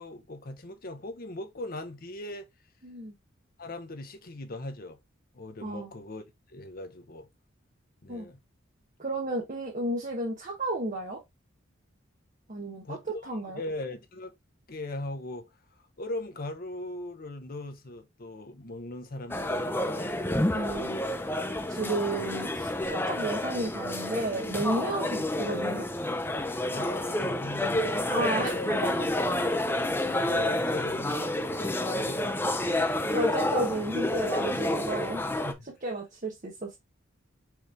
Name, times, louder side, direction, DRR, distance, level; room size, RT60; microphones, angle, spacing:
voice 1, 0.0-2.5 3.6-5.0 5.3-6.2 6.5-7.3 8.0-8.4 12.8-14.3 14.7-15.5 15.8-20.1 26.7-28.7 30.0-33.1 35.2-35.7, left 1 dB, 45° left, 0.8 m, -39 dB
voice 2, 2.8-3.1 5.6-5.9 8.1-8.3 9.0-11.2 12.5-13.0 13.2-13.6 20.5-21.0 21.7-25.9 28.1-29.1 32.6-35.2 35.8-36.8, right 2 dB, 40° right, 1.1 m, -32 dB
sound 1, 19.3-35.5, left 1 dB, 10° left, 0.5 m, -29 dB
4.6 x 3.2 x 3.5 m
head